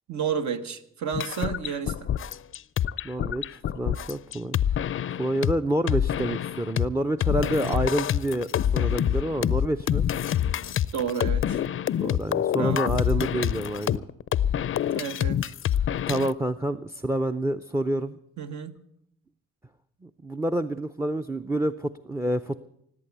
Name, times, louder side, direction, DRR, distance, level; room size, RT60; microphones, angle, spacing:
voice 1, 0.1-2.1 10.9-11.6 12.5-12.8 14.9-15.5 18.4-18.8, right 7 dB, 70° right, 8 dB, 1.2 m, -31 dB
sound 1, 1.1-5.5 5.9-6.9 7.2-16.3, left 10 dB, 45° left, 0.5 m, -26 dB
voice 2, 3.0-4.6 5.2-8.5 8.7-10.1 12.0-14.0 16.1-18.2 20.0-22.6, right 1 dB, 10° right, 12 dB, 0.5 m, -28 dB
18.0 x 8.4 x 8.0 m, 0.74 s
cardioid pair, 90°, 30 cm